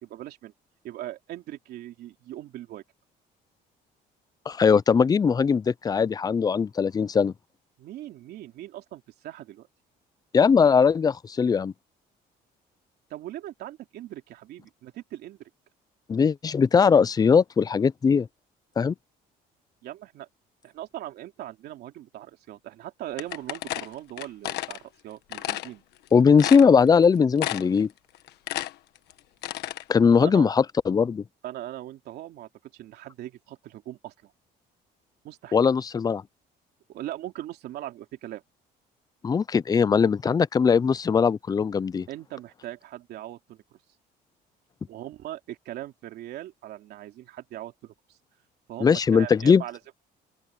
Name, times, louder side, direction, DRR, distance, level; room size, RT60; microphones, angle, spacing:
voice 1, 0.0-0.5 0.8-2.8 7.8-9.7 13.1-15.5 19.8-20.3 20.6-25.8 30.0-30.5 31.4-34.3 35.2-35.6 36.9-38.4 42.1-43.8 44.9-47.9 48.7-49.9, right 13 dB, 75° right, 3.0 m, -40 dB
voice 2, 4.5-7.3 10.3-11.7 16.1-18.3 18.8-18.9 26.1-27.9 29.9-31.2 35.5-36.2 39.2-42.1 48.8-49.6, left 6 dB, 20° left, 0.4 m, -20 dB
sound 1, 23.2-24.8 25.3-25.7 26.1-26.2 26.4-27.0 27.4-27.8 28.1-29.8, left 14 dB, 80° left, 1.4 m, -32 dB
open air
cardioid pair, 110°, 17 cm